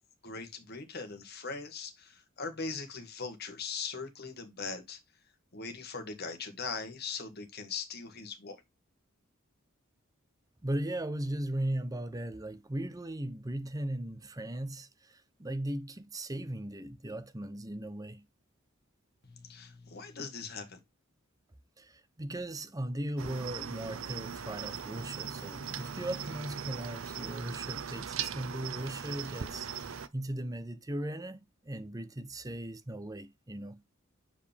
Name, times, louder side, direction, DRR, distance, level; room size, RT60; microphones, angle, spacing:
voice 1, 0.2-5.0 5.5-8.6 19.2-20.8, left 4 dB, 50° left, 1.6 m, -40 dB
voice 2, 10.6-18.2 21.8-33.8, right 1 dB, 15° right, 0.7 m, -38 dB
Cricket, 23.2-30.1, right 7 dB, 70° right, 0.7 m, -39 dB
7.4 x 4.9 x 3.4 m
head